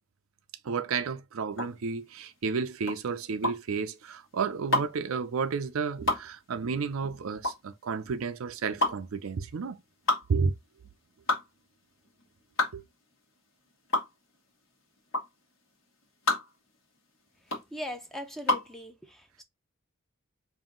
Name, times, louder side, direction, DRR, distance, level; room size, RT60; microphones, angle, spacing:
voice 1, 0.6-9.8 10.3-10.5 12.7-12.8, right 5 dB, 80° right, 0.5 m, -31 dB
sound 1, 1.5-18.8, left 1 dB, 65° left, 1.4 m, -31 dB
voice 2, 17.7-19.4, left 1 dB, ahead, 0.6 m, -40 dB
3.6 x 2.6 x 3.7 m
head